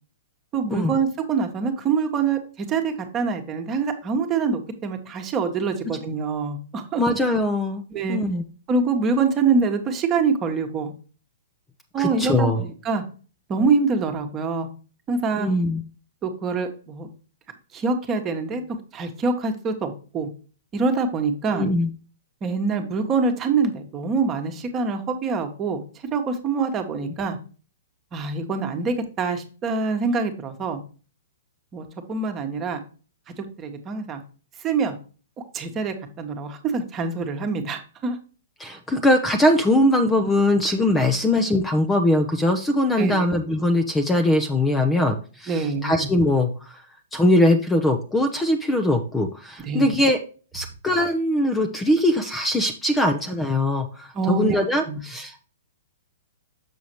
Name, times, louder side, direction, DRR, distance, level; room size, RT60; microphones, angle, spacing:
voice 1, 0.5-7.0 7.9-8.2 8.7-10.9 11.9-13.0 13.5-14.7 15.1-15.5 16.2-17.1 17.7-18.6 18.9-20.3 20.7-21.7 22.4-25.8 26.1-27.4 28.1-30.8 31.7-32.8 33.4-34.2 34.6-34.9 35.5-38.2 43.0-43.3 45.5-46.1 49.6-49.9 54.1-54.6 54.9-55.0, right 4 dB, 25° right, 6 dB, 1.3 m, -25 dB
voice 2, 7.0-7.8 8.1-8.4 12.0-12.6 15.4-15.8 21.5-21.9 38.6-46.8 47.1-50.2 50.5-55.5, left 1 dB, 10° left, 7 dB, 0.7 m, -21 dB
6.9 x 6.3 x 3.0 m, 0.37 s
figure-of-eight pair, 115°, 0 cm